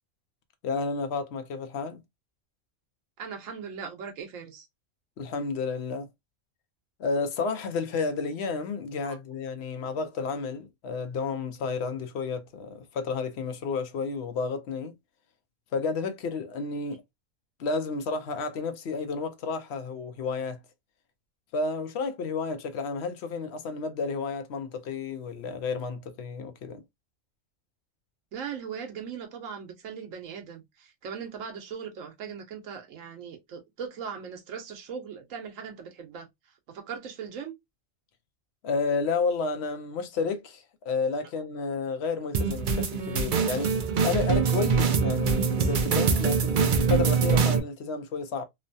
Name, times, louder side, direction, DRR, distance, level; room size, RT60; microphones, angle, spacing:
voice 1, 0.6-2.0 5.2-6.1 7.0-14.9 15.7-17.0 17.6-20.6 21.5-26.8 38.6-43.7 44.0-48.4, left 4 dB, 65° left, 0.8 m, -31 dB
voice 2, 3.2-4.7 9.0-9.2 28.3-36.3 36.7-37.5, right 7 dB, 85° right, 1.1 m, -39 dB
sound 1, 42.3-47.6, right 5 dB, 55° right, 0.5 m, -24 dB
3.0 x 2.1 x 2.5 m
omnidirectional pair, 1.3 m